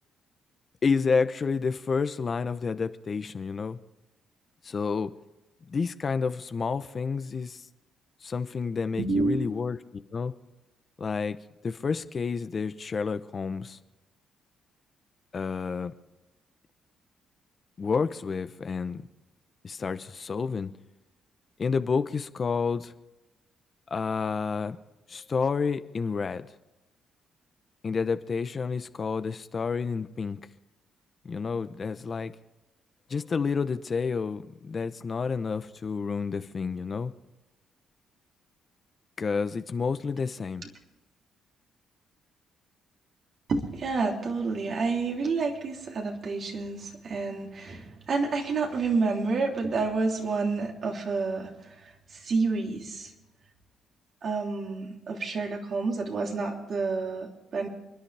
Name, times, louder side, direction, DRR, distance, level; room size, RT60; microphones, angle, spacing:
voice 1, 0.8-3.8 4.6-5.1 5.7-7.7 8.2-9.8 10.1-10.3 11.0-11.4 11.6-13.8 15.3-15.9 17.8-19.1 19.6-20.7 21.6-22.9 23.9-24.8 25.1-26.5 27.8-30.4 31.2-32.3 33.1-37.1 39.2-40.6, left 5 dB, 40° left, 0.8 m, -29 dB
voice 2, 9.0-9.4 43.5-53.1 54.2-57.7, right 4 dB, 55° right, 3.2 m, -29 dB
30.0 x 10.5 x 3.4 m
cardioid pair, 90°, 0 cm